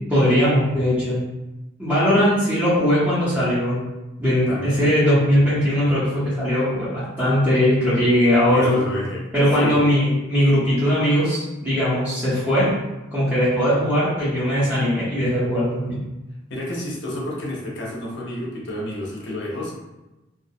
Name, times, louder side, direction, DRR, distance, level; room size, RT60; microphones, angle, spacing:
voice 1, 0.1-1.2 1.8-3.8 4.2-8.8 9.3-12.7 13.1-16.0, equal, 10° right, -12 dB, 0.7 m, -19 dB
voice 2, 4.5-4.9 8.5-9.2 9.6-9.8 16.5-19.7, left 1 dB, 60° left, -3 dB, 0.6 m, -30 dB
2.3 x 2.0 x 2.7 m, 1.0 s
head